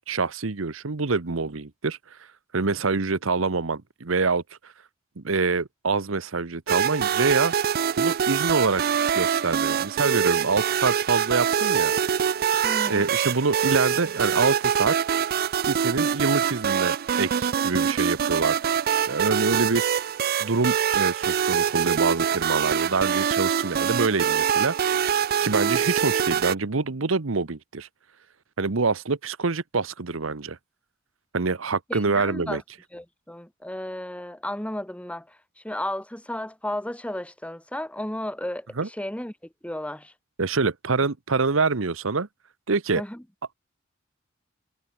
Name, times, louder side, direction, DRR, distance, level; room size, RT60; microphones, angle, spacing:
voice 1, 0.1-2.0 2.5-4.7 5.2-7.5 8.0-8.8 9.1-11.9 12.9-15.0 15.7-18.6 19.1-19.8 20.4-25.0 25.4-27.9 28.6-30.6 31.3-32.6 38.8-38.9 40.4-42.3 42.7-43.0, right 4 dB, 70° right, 1.0 m, -25 dB
sound 1, 6.7-26.6, right 8 dB, 50° right, 0.4 m, -24 dB
voice 2, 12.6-13.1 31.9-32.6 32.9-35.4 35.6-39.3 39.6-40.1 42.9-43.2, left 1 dB, 5° left, 1.5 m, -33 dB
head